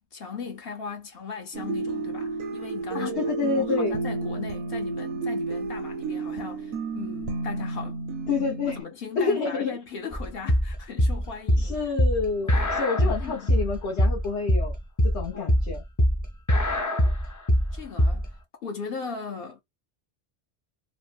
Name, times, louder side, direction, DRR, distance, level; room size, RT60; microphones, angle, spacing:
voice 1, 0.0-8.0 8.8-11.8 12.4-12.7 13.0-13.5 15.3-15.5 17.7-19.6, left 5 dB, 60° left, 0.9 m, -38 dB
sound 1, 1.5-8.8, right 3 dB, 85° right, 1.0 m, -31 dB
voice 2, 2.9-4.0 8.3-8.8 9.2-9.8 11.6-14.7 15.0-15.8, left 4 dB, 85° left, 1.2 m, -28 dB
sound 2, 10.1-18.3, equal, 25° left, 0.4 m, -22 dB
3.1 x 2.1 x 2.3 m
omnidirectional pair, 1.1 m